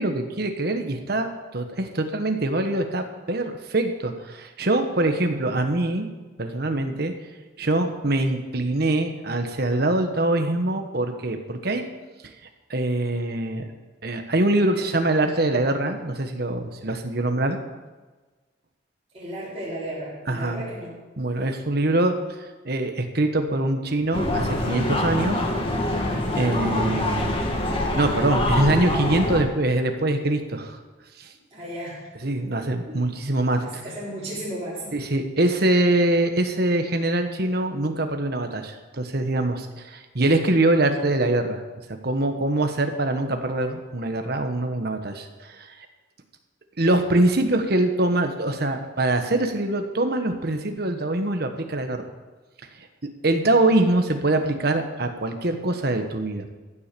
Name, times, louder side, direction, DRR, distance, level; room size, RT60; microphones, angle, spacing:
voice 1, 0.0-6.1 6.4-7.1 7.6-11.8 12.7-13.7 14.0-17.6 20.3-20.6 21.2-22.2 22.6-25.4 26.0-27.4 27.9-30.8 31.2-31.3 32.2-33.6 34.9-41.6 41.9-45.7 46.8-52.0 53.2-56.5, right 2 dB, 55° right, 6 dB, 1.3 m, -24 dB
voice 2, 19.1-21.0 31.5-32.1 32.9-33.0 33.6-34.9, right 1 dB, 30° right, -14 dB, 5.4 m, -34 dB
sound 1, 24.1-29.4, left 1 dB, 30° left, 1.9 m, -25 dB
15.0 x 7.5 x 6.8 m, 1.3 s
head